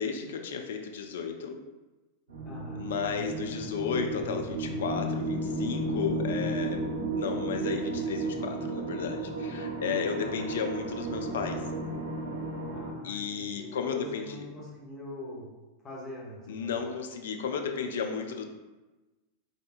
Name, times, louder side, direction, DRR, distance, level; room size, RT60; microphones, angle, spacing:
voice 1, 0.0-1.6 2.8-6.8 7.1-11.6 13.0-14.4 16.5-18.5, left 6 dB, 60° left, 4 dB, 0.3 m, -33 dB
sound 1, 2.3-12.9, right 2 dB, 70° right, 0.7 m, -33 dB
voice 2, 2.4-3.5 10.2-10.6 12.7-15.5 15.8-16.8, left 1 dB, 20° left, -5 dB, 1.0 m, -44 dB
3.3 x 2.6 x 2.4 m, 1.1 s
figure-of-eight pair, 90°, 0 cm